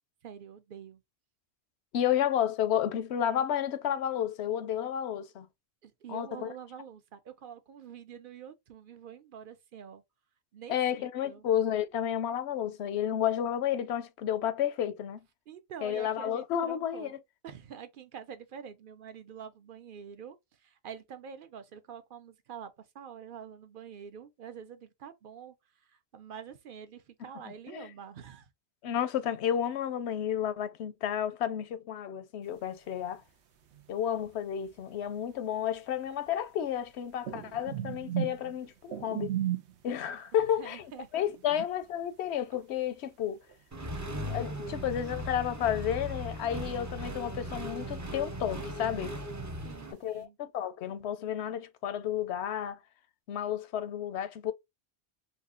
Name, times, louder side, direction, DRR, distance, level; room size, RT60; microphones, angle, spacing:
voice 1, 0.2-1.0 5.8-10.0 10.5-11.5 15.5-25.5 25.8-28.5 40.6-41.1 41.5-41.6 49.6-50.4, right 8 dB, 60° right, 0.8 m, -46 dB
voice 2, 1.9-5.5 6.1-6.5 10.7-15.2 15.8-17.2 27.7-27.9 28.8-33.2 33.9-39.3 39.8-40.9 41.1-43.4 44.3-49.1 49.9-52.8 53.3-54.5, left 10 dB, 85° left, 0.9 m, -31 dB
sound 1, 32.5-33.3 33.6-44.2 44.6-46.1 46.4-50.2, right 11 dB, 90° right, 1.0 m, -39 dB
Accelerating revving vroom, 43.7-49.9, equal, 25° right, 0.5 m, -38 dB
4.2 x 2.4 x 2.4 m
omnidirectional pair, 1.1 m